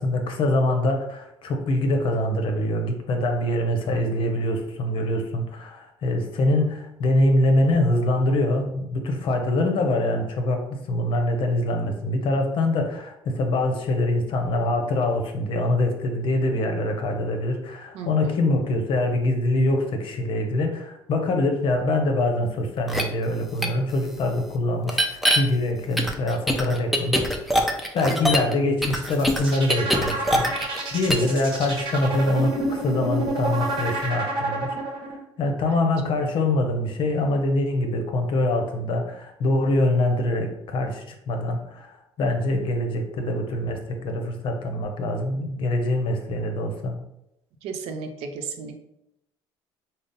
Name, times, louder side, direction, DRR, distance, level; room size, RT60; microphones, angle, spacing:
voice 1, 0.0-27.2 27.9-35.0 35.4-47.0, left 1 dB, 55° left, 4 dB, 0.7 m, -24 dB
voice 2, 17.9-18.4 28.0-28.2 35.7-35.9 36.2-36.3 47.6-48.8, right 5 dB, 80° right, 5 dB, 0.6 m, -34 dB
sound 1, 22.9-23.0 23.6-23.7 24.9-25.4 26.0-28.5 28.8-30.8 31.1-31.3, equal, ahead, 0.5 m, -22 dB
sound 2, 28.9-35.1, right 2 dB, 50° right, 1.0 m, -29 dB
3.8 x 2.0 x 3.9 m, 0.83 s
cardioid pair, 100°, 10 cm